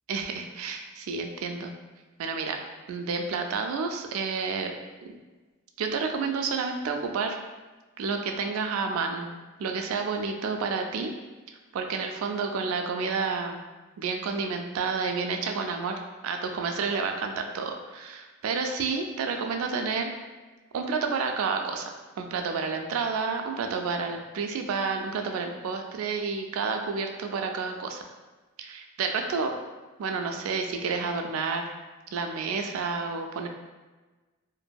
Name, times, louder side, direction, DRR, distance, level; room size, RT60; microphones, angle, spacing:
voice 1, 0.1-1.7 2.2-2.6 2.9-4.7 5.0-5.2 5.8-7.4 8.0-9.3 9.6-11.1 11.7-13.6 14.0-20.1 20.7-28.0 28.6-29.5 30.0-31.7 32.1-33.5, right 4 dB, 80° right, 4 dB, 0.3 m, -30 dB
2.6 x 2.5 x 2.2 m, 1.3 s
head